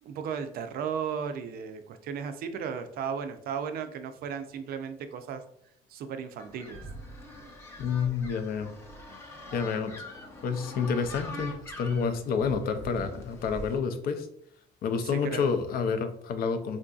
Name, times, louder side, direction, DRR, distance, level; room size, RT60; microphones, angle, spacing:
voice 1, 0.0-5.4 5.9-6.9 15.0-15.6, right 7 dB, 65° right, 9 dB, 0.4 m, -35 dB
sound 1, 6.4-13.8, left 1 dB, 15° left, 0.6 m, -43 dB
voice 2, 7.8-8.7 9.5-9.9 10.4-14.3 14.8-16.8, left 5 dB, 65° left, 8 dB, 0.5 m, -29 dB
3.6 x 2.6 x 2.3 m, 0.69 s
cardioid pair, 110°, 17 cm